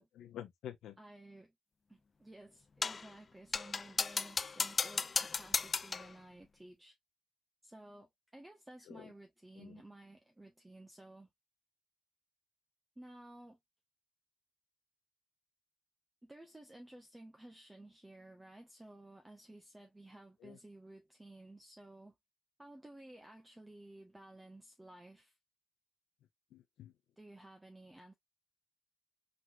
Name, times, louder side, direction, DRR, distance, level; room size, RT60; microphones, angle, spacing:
voice 1, 0.0-1.0 8.9-9.1 9.5-9.8 20.4-20.6 26.5-26.9, left 10 dB, 75° left, 1.1 m, -49 dB
voice 2, 1.0-1.5 1.9-7.0 7.6-11.3 13.0-13.6 16.2-22.1 22.6-25.3 27.2-28.1, right 1 dB, 10° right, 1.0 m, -55 dB
sound 1, 2.8-3.1 3.5-6.1, left 4 dB, 35° left, 0.3 m, -35 dB
4.5 x 4.1 x 2.4 m
cardioid pair, 90°, 0 cm